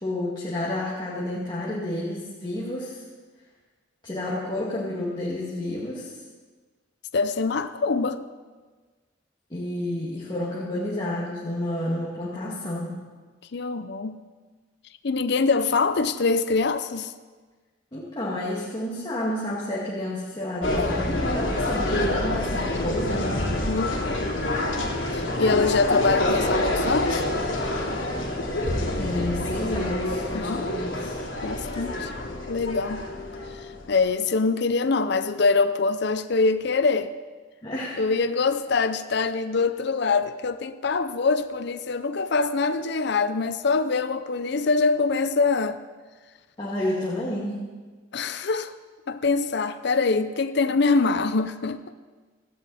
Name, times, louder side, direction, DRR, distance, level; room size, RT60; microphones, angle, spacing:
voice 1, 0.0-3.0 4.0-6.1 9.5-13.0 17.9-23.5 29.0-31.2 37.6-38.0 46.6-47.7, left 1 dB, 25° left, -6 dB, 2.2 m, -30 dB
voice 2, 7.1-8.2 13.5-14.2 15.0-17.1 23.6-24.3 25.1-27.2 30.3-30.6 31.4-32.1 32.5-33.0 33.5-37.1 38.0-45.8 48.1-48.7 49.1-51.8, left 4 dB, 60° left, 11 dB, 0.6 m, -24 dB
sound 1, 20.6-34.1, left 1 dB, 80° left, 3.1 m, -27 dB
16.5 x 15.0 x 4.2 m, 1.4 s
head